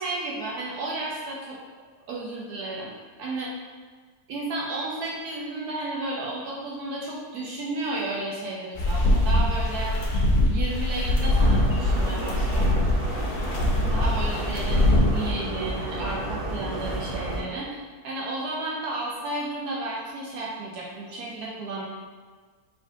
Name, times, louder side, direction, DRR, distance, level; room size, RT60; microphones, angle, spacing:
voice 1, 0.0-1.6 2.1-2.9 3.2-3.5 4.3-10.0 10.5-12.7 13.7-21.9, right 2 dB, 75° right, -4 dB, 1.1 m, -33 dB
sound 1, 8.8-15.3, left 1 dB, 50° left, 0.6 m, -23 dB
sound 2, 11.2-17.4, right 1 dB, 40° right, 1.1 m, -32 dB
4.6 x 3.5 x 2.6 m, 1.5 s
omnidirectional pair, 1.7 m